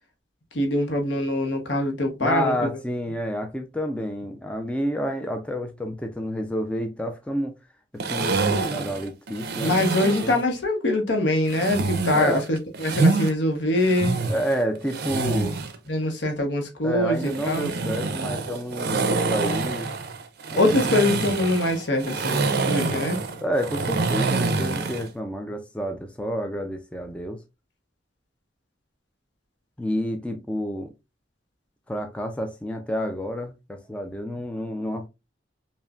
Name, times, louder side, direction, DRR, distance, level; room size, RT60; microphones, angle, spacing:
voice 1, 0.5-2.6 9.6-14.2 15.9-17.7 20.5-23.2, left 1 dB, 70° left, 1.0 m, -23 dB
voice 2, 2.2-7.6 7.9-9.9 10.2-10.4 12.1-12.4 14.3-15.7 16.8-19.9 20.5-20.7 23.4-27.4 29.8-30.9 31.9-35.1, equal, 5° left, 0.4 m, -29 dB
sound 1, 8.0-10.4 11.5-13.3 13.8-15.8 17.2-25.1, right 3 dB, 60° right, 0.6 m, -26 dB
5.4 x 2.1 x 2.3 m
head